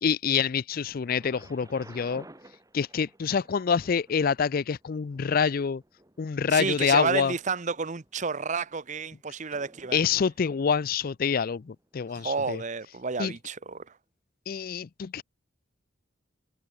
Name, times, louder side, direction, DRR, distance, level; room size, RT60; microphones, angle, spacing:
voice 1, 0.0-2.2 2.7-5.8 6.2-7.3 9.9-12.6 13.2-13.3 14.5-15.2, left 6 dB, 45° left, 0.4 m, -26 dB
Thunder, 1.0-12.9 13.7-13.8, right 1 dB, 15° right, 2.7 m, -56 dB
voice 2, 6.5-10.0 12.1-14.0, right 5 dB, 40° right, 0.8 m, -31 dB
head